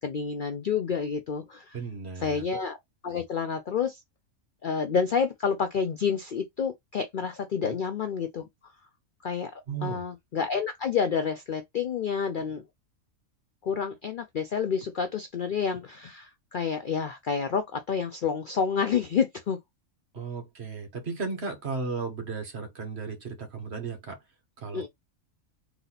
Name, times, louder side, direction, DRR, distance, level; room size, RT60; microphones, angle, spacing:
voice 1, 0.0-1.8 2.2-2.8 3.0-4.0 4.6-8.4 9.2-9.5 9.8-12.6 13.6-19.6 24.7-24.9, left 6 dB, 55° left, 0.5 m, -29 dB
voice 2, 1.7-2.4 7.6-7.8 9.7-10.0 20.1-24.2 24.6-24.9, right 4 dB, 50° right, 1.6 m, -35 dB
4.0 x 2.8 x 4.0 m
omnidirectional pair, 1.4 m